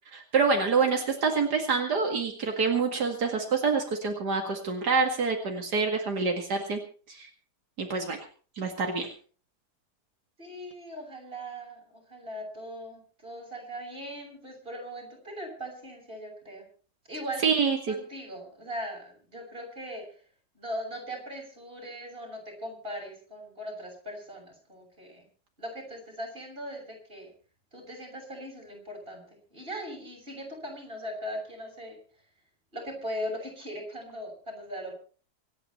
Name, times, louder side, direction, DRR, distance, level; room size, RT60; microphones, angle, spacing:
voice 1, 0.1-6.8 7.1-7.3 7.8-8.2 8.6-9.1 17.4-17.9, right 5 dB, 80° right, 2 dB, 2.6 m, -26 dB
voice 2, 10.4-16.7 17.1-17.4 17.9-20.1 20.6-25.3 25.6-27.3 27.7-32.0 32.7-34.9, equal, 35° right, 1 dB, 7.1 m, -39 dB
26.0 x 10.0 x 4.3 m, 0.41 s
omnidirectional pair, 1.7 m